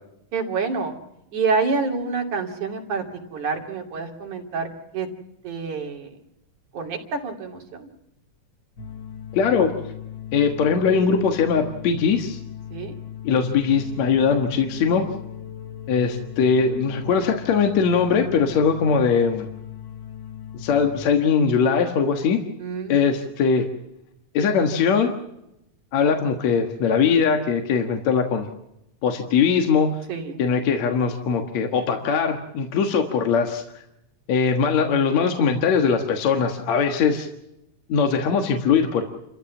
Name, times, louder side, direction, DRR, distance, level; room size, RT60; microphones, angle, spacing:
voice 1, 0.3-1.0 1.3-3.0 3.3-5.1 5.4-6.1 6.7-7.9 12.7-12.9 22.6-23.0 30.1-30.4, right 4 dB, 75° right, 3 dB, 4.1 m, -27 dB
sound 1, 8.8-21.0, left 10 dB, 50° left, 1.5 m, -38 dB
voice 2, 9.3-9.7 10.3-12.4 13.2-15.1 15.9-19.5 20.5-22.4 22.9-23.7 24.3-25.1 25.9-28.5 29.0-29.9 30.4-33.6 34.3-37.3 37.9-39.0, left 6 dB, 65° left, 4 dB, 2.7 m, -21 dB
29.0 x 15.0 x 7.2 m, 0.85 s
omnidirectional pair, 3.5 m